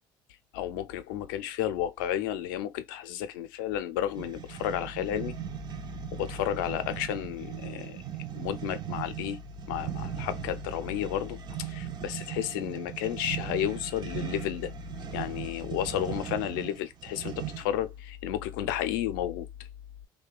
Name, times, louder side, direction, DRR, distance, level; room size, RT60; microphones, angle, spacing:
voice 1, 0.5-5.4 6.1-8.0 8.3-9.4 9.7-14.7 15.1-19.5, left 11 dB, 80° left, 0.4 m, -32 dB
sound 1, 4.1-17.8, right 11 dB, 40° right, 0.5 m, -39 dB
2.8 x 2.1 x 2.3 m
hypercardioid pair, 70°, 11 cm